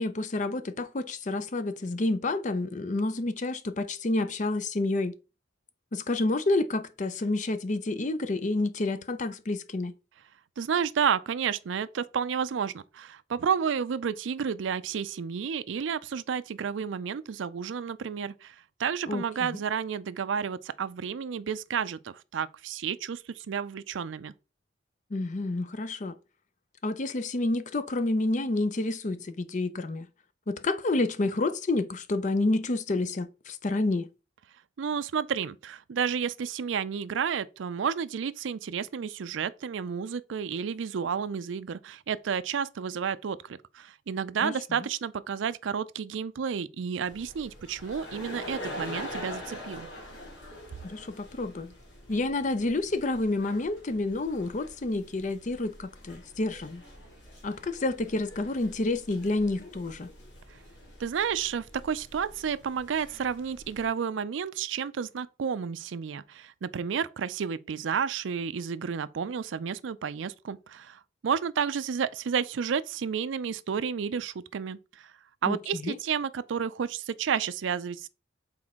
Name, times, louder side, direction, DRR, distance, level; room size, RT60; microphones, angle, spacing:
voice 1, 0.0-5.1 5.9-10.0 19.1-19.2 19.5-19.6 25.1-26.1 26.8-30.1 30.5-34.1 44.4-44.6 50.8-51.7 52.1-56.8 57.4-60.1 75.5-76.0, left 2 dB, 40° left, 0.5 m, -29 dB
voice 2, 10.6-18.5 18.8-24.3 34.8-49.9 61.0-74.8 75.4-78.1, right 7 dB, 85° right, 0.4 m, -31 dB
sound 1, 47.1-63.9, left 1 dB, 65° left, 2.8 m, -45 dB
6.1 x 4.3 x 3.6 m
head